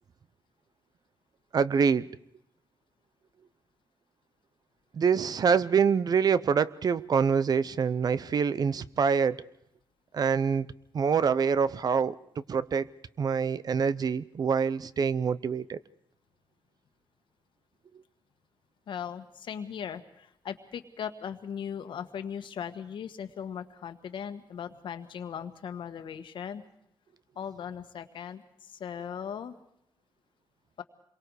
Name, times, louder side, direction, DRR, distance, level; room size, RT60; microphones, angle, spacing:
voice 1, 1.5-2.1 4.9-9.4 10.1-10.7 10.9-12.2 12.5-12.9 13.2-15.8, right 6 dB, 50° right, 16 dB, 0.7 m, -25 dB
voice 2, 18.9-26.6 27.3-29.5, left 8 dB, 80° left, 9 dB, 1.6 m, -38 dB
27.5 x 23.0 x 4.9 m, 0.76 s
wide cardioid pair, 145°, 8 cm